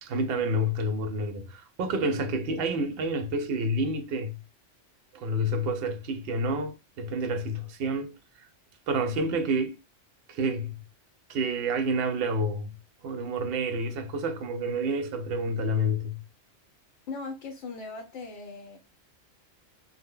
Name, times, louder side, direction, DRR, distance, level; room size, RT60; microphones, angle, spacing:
voice 1, 0.0-4.4 5.1-8.1 8.9-9.8 10.3-10.8 11.3-12.7 13.0-16.2, right 1 dB, 60° right, 0.7 m, -29 dB
voice 2, 17.1-18.8, left 3 dB, 70° left, 0.8 m, -39 dB
2.1 x 2.1 x 3.5 m
omnidirectional pair, 1.2 m